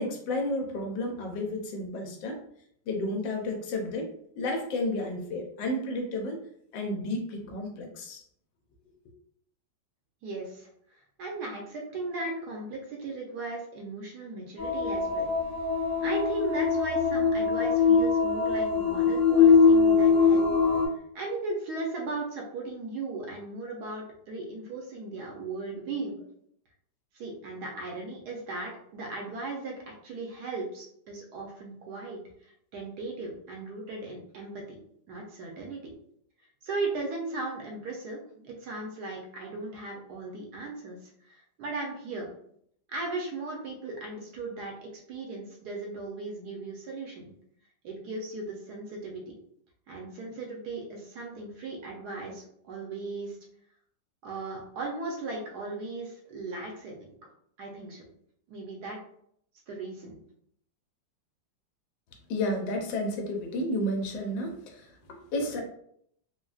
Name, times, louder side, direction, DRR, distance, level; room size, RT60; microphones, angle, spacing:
voice 1, 0.0-2.4 2.9-4.1 4.4-6.4 6.7-8.2 62.3-65.6, left 1 dB, 80° left, 2 dB, 1.3 m, -32 dB
voice 2, 10.2-10.7 11.2-15.3 16.0-20.4 21.1-26.2 27.1-34.8 35.1-35.9 36.6-42.3 42.9-47.3 47.8-49.2 49.9-53.4 54.2-57.1 57.6-58.0 58.5-59.0 59.7-60.2, right 3 dB, 65° right, 0 dB, 1.1 m, -37 dB
sound 1, 14.6-20.9, left 5 dB, 55° left, 1.2 m, -22 dB
3.8 x 2.2 x 2.3 m, 0.67 s
omnidirectional pair, 2.0 m